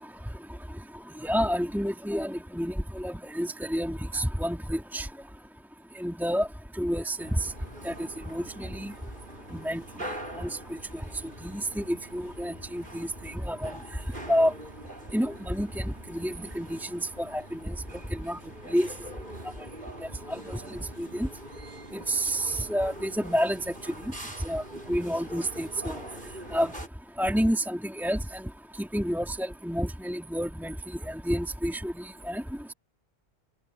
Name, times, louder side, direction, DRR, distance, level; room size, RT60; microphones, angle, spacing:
voice 1, 1.2-5.1 6.0-6.5 6.8-7.5 7.8-7.9 8.3-8.9 9.5-9.8 10.4-10.6 11.4-13.7 14.3-14.5 15.1-17.7 18.1-18.4 18.7-18.9 20.3-20.6 21.0-21.3 21.9-23.6 24.4-24.6 24.9-26.0 26.5-26.7 27.2-28.4 28.8-30.7 31.0-32.4, equal, ahead, 2.7 m, -29 dB
sound 1, 7.2-26.9, right 1 dB, 45° right, 7.4 m, -44 dB
open air
omnidirectional pair, 1.2 m